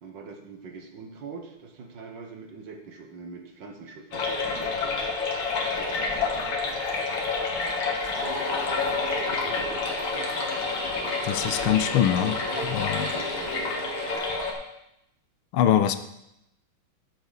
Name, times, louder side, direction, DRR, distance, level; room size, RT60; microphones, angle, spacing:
voice 1, 0.0-5.1 5.6-6.9 9.1-10.5 13.1-13.3, right 4 dB, 60° right, 2 dB, 1.9 m, -44 dB
sound 1, 4.1-14.5, left 4 dB, 70° left, 2.1 m, -29 dB
sound 2, 8.1-14.1, left 1 dB, 20° left, 2.3 m, -35 dB
voice 2, 11.2-12.3 12.6-13.1 15.5-16.0, left 10 dB, 85° left, 11 dB, 1.5 m, -23 dB
13.5 x 7.0 x 4.0 m, 0.83 s
omnidirectional pair, 2.3 m